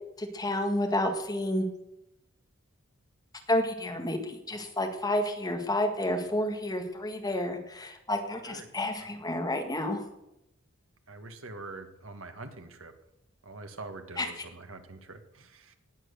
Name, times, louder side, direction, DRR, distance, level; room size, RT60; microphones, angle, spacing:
voice 1, 0.2-1.7 3.5-10.0 14.2-14.4, left 1 dB, 20° left, 4 dB, 1.7 m, -30 dB
voice 2, 11.1-12.9 13.4-15.8, right 3 dB, 65° right, 7 dB, 1.5 m, -44 dB
18.5 x 7.4 x 6.8 m, 0.86 s
head